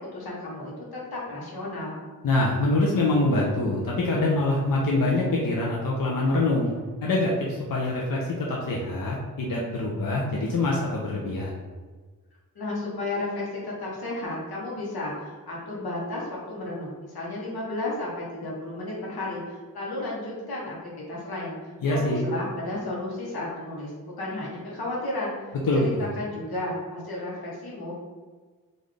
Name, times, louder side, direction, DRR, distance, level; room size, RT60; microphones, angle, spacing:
voice 1, 0.1-2.0 12.5-20.8 21.1-25.3 25.7-28.0, left 2 dB, 90° left, -5 dB, 1.0 m, -33 dB
voice 2, 2.2-6.7 7.0-11.6 21.8-22.2 25.7-26.2, left 2 dB, 65° left, -3 dB, 0.7 m, -25 dB
3.8 x 2.5 x 3.2 m, 1.4 s
cardioid pair, 55°, 36 cm